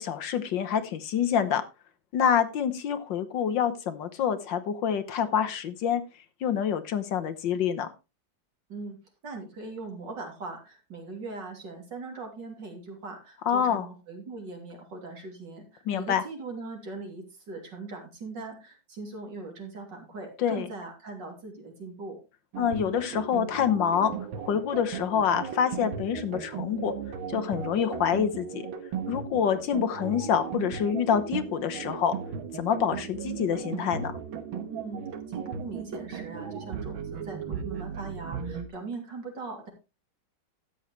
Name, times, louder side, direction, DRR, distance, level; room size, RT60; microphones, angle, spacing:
voice 1, 0.0-1.6 2.1-6.0 6.4-7.9 13.5-13.9 15.9-16.2 20.4-20.7 22.6-24.1 24.4-26.9 27.3-28.6 29.1-32.1 32.5-34.1, left 8 dB, 70° left, 9 dB, 1.6 m, -26 dB
voice 2, 9.2-22.2 34.7-39.7, right 3 dB, 60° right, 2 dB, 3.7 m, -40 dB
sound 1, 22.5-38.7, right 7 dB, 80° right, 2.0 m, -36 dB
13.5 x 9.0 x 3.2 m, 0.28 s
omnidirectional pair, 2.1 m